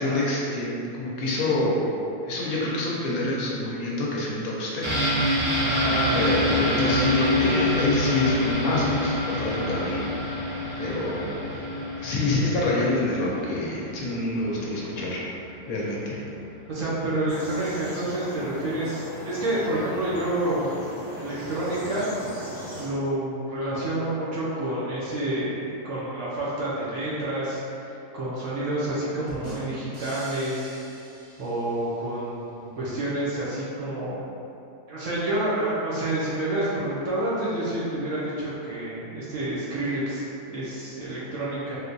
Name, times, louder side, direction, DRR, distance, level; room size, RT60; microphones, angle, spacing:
voice 1, 0.0-1.9 2.2-4.9 5.1-5.3 6.1-10.0 10.8-11.6 12.0-15.2 15.7-16.2, left 2 dB, 70° left, -5 dB, 0.9 m, -27 dB
sound 1, 4.8-14.4 14.8-14.9, left 1 dB, 25° right, 0.5 m, -26 dB
voice 2, 5.6-6.3 16.7-20.8 21.1-22.1 22.8-27.6 28.1-30.7 31.4-34.2 34.9-41.8, right 1 dB, 65° right, -8 dB, 0.9 m, -28 dB
sound 2, 17.3-22.9, equal, 30° left, 0.8 m, -38 dB
sound 3, 29.3-32.1, right 1 dB, 80° right, 0.3 m, -43 dB
3.5 x 2.7 x 2.5 m, 2.7 s
omnidirectional pair, 1.7 m